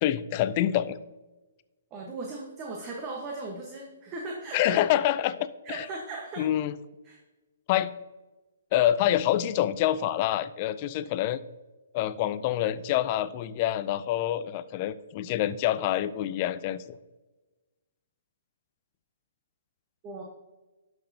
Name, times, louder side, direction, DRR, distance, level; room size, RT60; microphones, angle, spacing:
voice 1, 0.0-1.0 4.5-5.9 6.4-6.7 7.7-7.9 8.7-11.4 11.9-17.0, left 12 dB, 35° left, 15 dB, 0.4 m, -26 dB
voice 2, 1.9-4.8 5.6-6.5 7.0-7.2 20.0-20.2, right 3 dB, 25° right, 0 dB, 1.2 m, -37 dB
11.5 x 6.1 x 2.8 m, 1.1 s
figure-of-eight pair, 130°, 0 cm